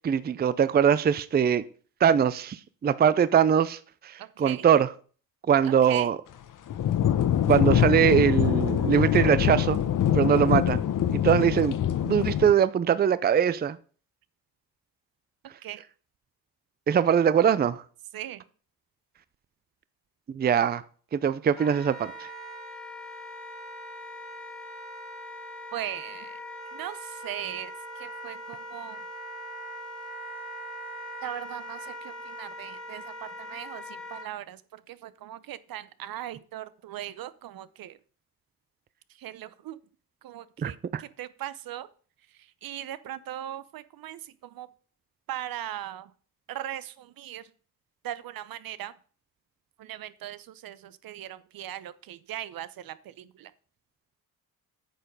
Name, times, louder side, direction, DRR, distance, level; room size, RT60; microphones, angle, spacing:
voice 1, 0.0-1.6 2.0-4.9 5.5-6.2 7.5-9.8 10.1-10.8 11.1-13.8 16.9-17.8 20.3-20.8 21.1-22.3 40.6-41.0, right 8 dB, 25° right, 0.5 m, -22 dB
voice 2, 4.2-4.7 5.6-6.1 15.6-15.8 18.1-18.4 25.7-26.3 26.7-27.7 28.0-29.0 31.2-38.0 39.2-39.8 40.2-41.9 42.6-44.7 45.3-46.1 46.5-47.5 48.0-48.9 49.8-53.5, right 12 dB, 70° right, 0.8 m, -39 dB
sound 1, 6.7-12.5, left 10 dB, 55° left, 0.9 m, -24 dB
Wind instrument woodwind instrument, 21.5-34.3, equal, ahead, 1.9 m, -41 dB
9.2 x 6.7 x 5.3 m
cardioid pair, 110°, 37 cm